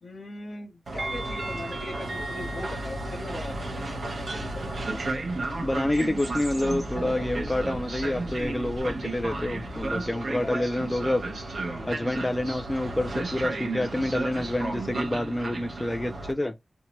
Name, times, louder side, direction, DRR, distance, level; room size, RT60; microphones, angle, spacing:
voice 1, 0.0-5.4 10.1-10.7 11.7-12.1, left 2 dB, 80° left, 0.8 m, -40 dB
Train, 0.9-16.3, right 2 dB, 70° right, 0.8 m, -33 dB
sound 1, 4.2-10.1, equal, 30° right, 0.8 m, -39 dB
voice 2, 5.6-11.2 11.9-16.5, left 1 dB, 15° left, 0.3 m, -28 dB
2.7 x 2.1 x 2.9 m
wide cardioid pair, 115°, 0 cm